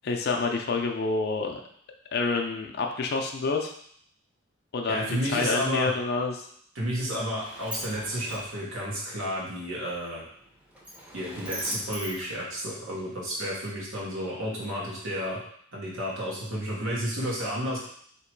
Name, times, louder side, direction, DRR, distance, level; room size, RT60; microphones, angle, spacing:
voice 1, 0.0-1.6 2.1-3.7 4.7-6.5, left 4 dB, 50° left, 3 dB, 0.5 m, -28 dB
voice 2, 4.9-5.9 6.7-10.2 11.1-15.4 15.7-17.8, equal, 75° right, -5 dB, 1.3 m, -31 dB
Sliding door, 6.8-13.2, equal, 5° right, 0.7 m, -42 dB
3.0 x 2.9 x 4.5 m, 0.64 s
head